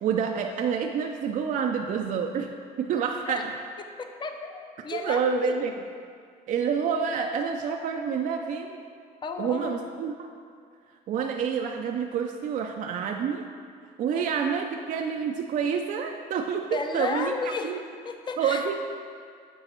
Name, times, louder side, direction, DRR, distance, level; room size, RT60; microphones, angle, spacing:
voice 1, 0.0-2.5 2.8-3.5 4.9-5.7 6.5-8.8 9.4-10.3 11.1-13.4 14.0-17.8 18.4-18.7, right 6 dB, 50° right, 3 dB, 0.4 m, -28 dB
voice 2, 4.0-5.6 9.2-9.8 14.1-14.2 16.7-18.7, left 4 dB, 25° left, 5 dB, 0.5 m, -33 dB
8.0 x 4.4 x 4.4 m, 2.2 s
cardioid pair, 110°, 17 cm